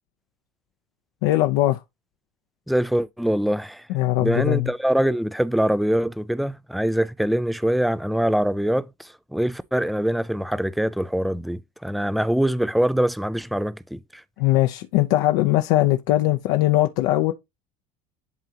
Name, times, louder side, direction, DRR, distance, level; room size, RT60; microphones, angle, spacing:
voice 1, 1.2-1.8 3.9-4.7 14.4-17.3, left 16 dB, 75° left, 0.7 m, -20 dB
voice 2, 2.7-3.8 4.2-14.0, equal, ahead, 0.3 m, -23 dB
11.0 x 3.7 x 2.9 m
cardioid pair, 135°, 19 cm